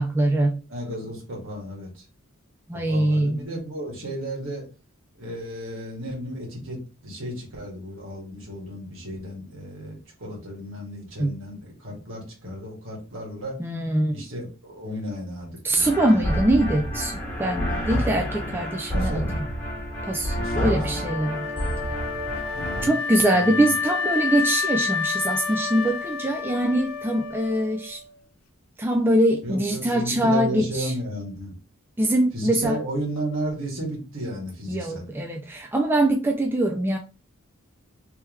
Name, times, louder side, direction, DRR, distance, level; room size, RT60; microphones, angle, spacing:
voice 1, 0.0-0.6 2.7-3.4 11.2-11.3 13.6-14.2 15.6-19.5 20.1-21.5 22.8-28.0 28.8-30.9 32.0-32.8 34.7-37.0, right 1 dB, 10° right, 2 dB, 0.3 m, -23 dB
voice 2, 0.7-2.0 2.7-4.7 5.2-13.6 14.1-16.3 18.4-19.4 20.3-21.0 22.5-22.9 23.3-23.7 29.4-31.5 32.3-35.1, equal, 70° right, -2 dB, 1.8 m, -34 dB
sound 1, 15.8-22.9, equal, 15° left, 1.7 m, -29 dB
Wind instrument woodwind instrument, 21.0-28.1, left 6 dB, 80° left, 0.5 m, -29 dB
3.3 x 3.3 x 3.0 m, 0.32 s
head